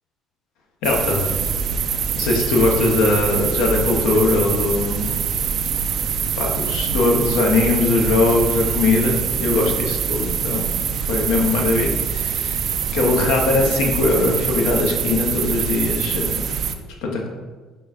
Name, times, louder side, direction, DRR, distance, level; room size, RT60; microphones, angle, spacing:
voice 1, 0.8-1.4 2.2-5.3 6.4-16.6 17.0-17.3, left 3 dB, 70° left, 0 dB, 0.7 m, -21 dB
sound 1, 0.8-16.8, right 7 dB, 55° right, 0.3 m, -24 dB
4.8 x 3.8 x 2.4 m, 1.4 s
hypercardioid pair, 55°, 0 cm